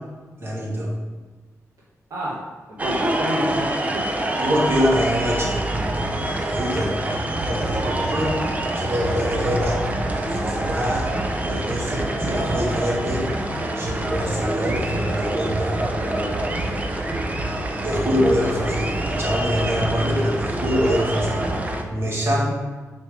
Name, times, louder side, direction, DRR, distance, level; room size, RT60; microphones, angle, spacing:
voice 1, 0.4-0.9 4.4-5.6 5.9-8.4 8.7-9.8 10.1-11.1 11.5-13.3 13.8-15.8 17.8-21.4 21.9-22.5, equal, 45° right, -4 dB, 1.8 m, -24 dB
voice 2, 2.1-4.6 11.4-11.7 15.9-17.1, equal, 75° right, -5 dB, 1.1 m, -32 dB
sound 1, 2.8-21.8, right 1 dB, 25° right, 0.6 m, -26 dB
4.7 x 4.2 x 4.9 m, 1.3 s
cardioid pair, 85°, 6 cm